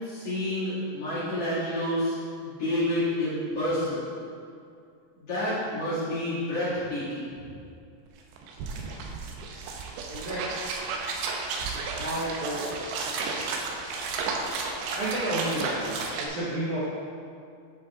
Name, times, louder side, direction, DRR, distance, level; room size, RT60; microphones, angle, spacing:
voice 1, 0.0-2.1 2.4-4.0 5.1-7.3, left 1 dB, 40° left, -13 dB, 2.4 m, -29 dB
sound 1, 8.1-8.2 8.3-16.3, right 4 dB, 85° right, 2.9 m, -33 dB
voice 2, 10.1-10.5 11.9-12.7 14.9-16.8, right 1 dB, 70° right, -8 dB, 1.9 m, -31 dB
10.0 x 5.4 x 3.7 m, 2.4 s
omnidirectional pair, 5.2 m